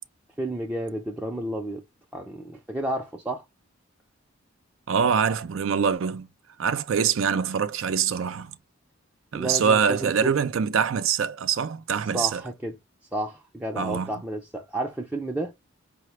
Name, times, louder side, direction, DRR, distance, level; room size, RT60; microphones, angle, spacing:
voice 1, 0.4-1.8 2.1-3.4 9.3-10.3 12.0-12.8 13.1-15.5, right 1 dB, 10° right, 0.4 m, -31 dB
voice 2, 4.9-6.3 6.6-8.5 9.3-12.4 13.8-14.1, right 7 dB, 85° right, 0.4 m, -24 dB
4.8 x 2.1 x 3.1 m
head